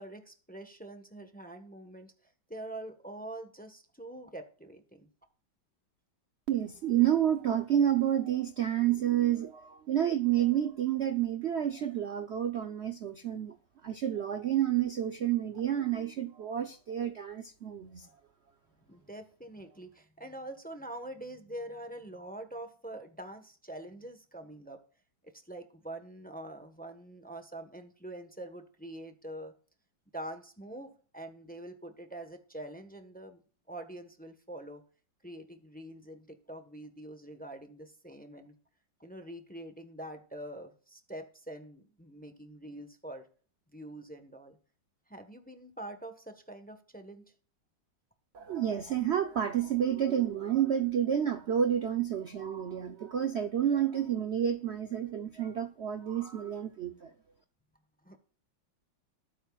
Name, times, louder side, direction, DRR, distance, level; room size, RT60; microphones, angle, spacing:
voice 1, 0.0-2.1 2.5-5.1 18.9-24.8 25.2-29.5 30.1-33.4 33.7-34.8 35.2-38.5 39.0-43.3 43.7-44.6 45.1-47.2 58.0-58.2, right 1 dB, 5° left, 1.0 m, -45 dB
voice 2, 6.5-13.5 13.8-18.1 48.3-57.1, right 10 dB, 70° right, 0.6 m, -29 dB
19.5 x 9.0 x 2.4 m
omnidirectional pair, 2.2 m